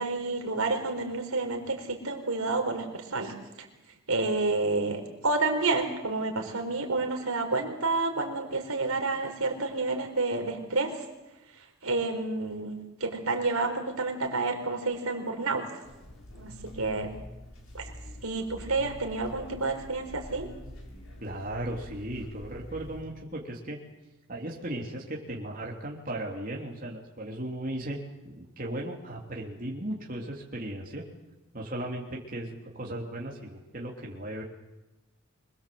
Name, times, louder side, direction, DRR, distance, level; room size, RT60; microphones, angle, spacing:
voice 1, 0.0-3.7 4.1-10.9 11.8-15.6 16.4-17.1 17.7-17.9 18.2-20.5, right 3 dB, 85° right, 3 dB, 4.3 m, -29 dB
sound 1, 15.8-23.0, left 1 dB, 80° left, 7.0 m, -45 dB
voice 2, 21.2-23.8 24.3-28.0 28.2-31.0 31.5-34.4, right 1 dB, 40° right, -2 dB, 3.3 m, -36 dB
26.0 x 21.0 x 7.8 m, 1.0 s
head